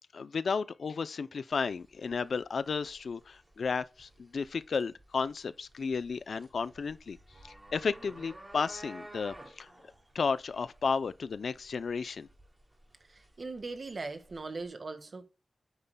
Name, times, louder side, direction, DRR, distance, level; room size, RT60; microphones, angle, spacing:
voice 1, 0.1-7.2 7.4-9.7 10.1-12.3, left 5 dB, 75° left, 0.5 m, -33 dB
sound 1, 1.5-14.7, right 1 dB, 15° right, 2.9 m, -53 dB
voice 2, 13.1-15.2, right 3 dB, 45° right, 1.7 m, -40 dB
9.8 x 9.0 x 2.3 m
wide cardioid pair, 135°, 0 cm